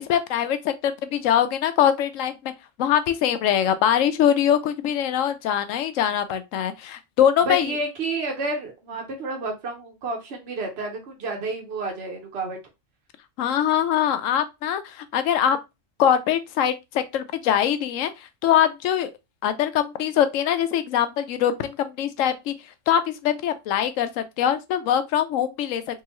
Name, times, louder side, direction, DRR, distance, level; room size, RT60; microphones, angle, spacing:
voice 1, 0.0-2.5 2.8-7.7 13.4-15.6 16.0-19.1 19.4-22.5 22.9-26.0, left 9 dB, 85° left, 1.0 m, -23 dB
voice 2, 7.4-12.6, right 2 dB, 55° right, 1.2 m, -30 dB
3.6 x 2.8 x 3.0 m
omnidirectional pair, 1.3 m